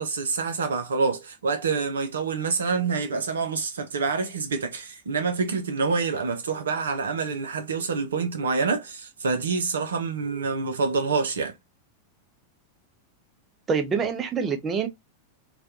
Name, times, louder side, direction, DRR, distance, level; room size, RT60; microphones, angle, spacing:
voice 1, 0.0-11.5, right 4 dB, 65° right, 0.5 m, -27 dB
voice 2, 13.7-14.9, right 5 dB, 20° right, 0.8 m, -25 dB
4.1 x 2.2 x 2.6 m
figure-of-eight pair, 90°, 0 cm